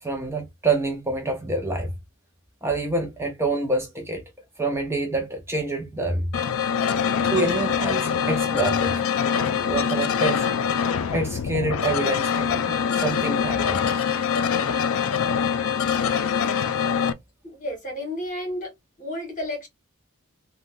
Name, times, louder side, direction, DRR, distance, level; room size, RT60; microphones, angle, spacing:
voice 1, 0.0-1.9 2.6-4.2 4.6-6.3 7.3-9.0 9.6-10.5 11.1-13.8, right 2 dB, 10° right, 0.6 m, -27 dB
sound 1, 6.3-17.1, left 7 dB, 70° left, 0.4 m, -24 dB
voice 2, 17.4-18.7 19.0-19.7, left 1 dB, 40° left, 1.4 m, -31 dB
3.6 x 2.3 x 2.5 m
head